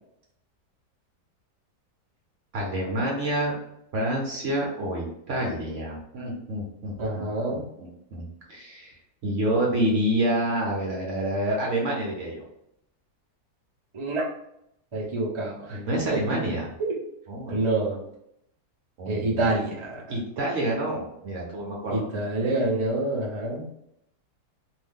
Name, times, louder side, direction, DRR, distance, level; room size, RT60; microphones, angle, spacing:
voice 1, 2.5-3.6 3.9-8.9 9.2-12.4 15.7-16.7 17.3-17.6 19.0-19.4 20.1-22.0, right 1 dB, 55° right, -2 dB, 0.9 m, -28 dB
voice 2, 7.0-7.6 13.9-14.3 14.9-15.8 16.1-16.4 16.8-17.0 17.5-18.0 19.1-20.0 21.9-23.6, right 2 dB, 30° right, -5 dB, 0.5 m, -27 dB
2.7 x 2.7 x 3.6 m, 0.76 s
omnidirectional pair, 1.8 m